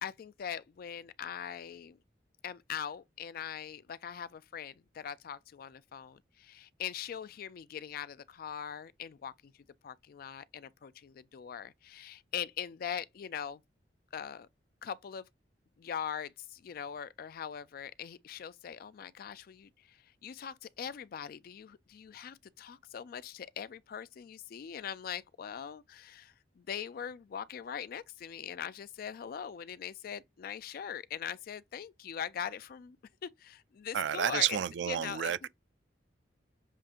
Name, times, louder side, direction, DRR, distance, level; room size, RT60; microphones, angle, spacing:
voice 1, 0.0-2.0 2.4-9.3 9.8-13.6 14.1-14.5 14.8-15.2 15.8-19.7 20.2-33.0 33.2-34.6 34.9-35.3, left 8 dB, 55° left, 0.3 m, -41 dB
voice 2, 33.9-35.5, right 10 dB, 75° right, 0.4 m, -31 dB
7.3 x 2.5 x 2.8 m
head